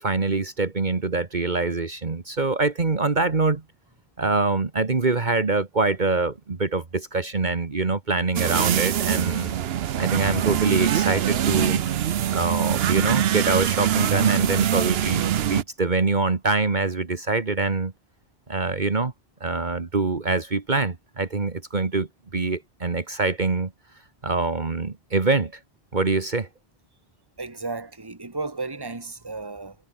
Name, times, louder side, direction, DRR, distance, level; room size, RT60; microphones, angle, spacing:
voice 1, 0.0-3.6 4.2-9.5 10.0-11.8 12.3-17.9 18.5-19.1 19.4-23.7 24.2-25.5 25.9-26.5, right 3 dB, 50° right, 1.7 m, -24 dB
sound 1, 8.4-15.6, right 10 dB, 75° right, 0.9 m, -23 dB
voice 2, 27.4-29.8, right 3 dB, 20° right, 1.8 m, -33 dB
omnidirectional pair, 1.0 m